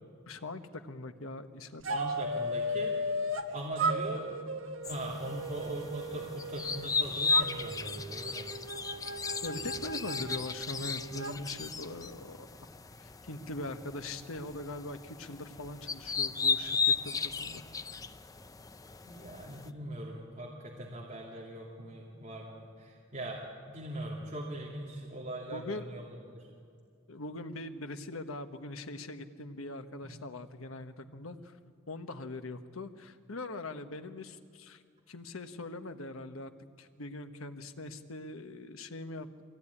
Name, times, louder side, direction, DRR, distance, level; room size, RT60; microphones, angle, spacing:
voice 1, 0.3-2.2 9.4-12.6 13.0-17.6 25.5-25.9 27.1-31.6 31.9-34.8 35.1-36.5 36.8-39.4, left 2 dB, 80° left, 8 dB, 1.2 m, -42 dB
sound 1, 1.8-3.5 3.8-6.9 7.3-11.4, right 1 dB, 65° right, 1.3 m, -36 dB
voice 2, 1.9-2.9 3.5-4.3 4.9-8.6 19.0-26.5 30.0-30.2, right 1 dB, 35° right, -4 dB, 2.7 m, -41 dB
sound 2, 4.8-19.7, left 5 dB, 15° left, 0.5 m, -35 dB
23.5 x 17.0 x 9.8 m, 2.2 s
head